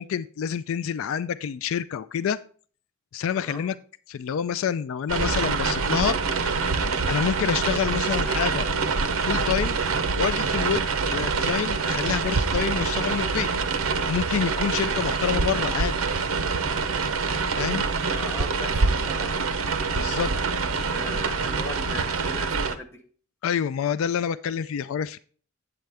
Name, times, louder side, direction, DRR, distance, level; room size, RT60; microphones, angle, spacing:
voice 1, 0.0-2.4 3.1-3.8 4.1-6.2 6.6-6.8 7.1-8.7 9.2-9.8 10.2-10.9 11.1-13.5 14.1-16.0 17.5-17.8 19.9-20.3 23.4-25.2, left 8 dB, 70° left, 16 dB, 0.3 m, -27 dB
sound 1, 5.1-22.8, right 4 dB, 75° right, 0.7 m, -25 dB
voice 2, 18.1-19.4 20.7-23.0, left 1 dB, 10° left, 3 dB, 0.9 m, -38 dB
8.5 x 7.8 x 3.4 m, 0.44 s
head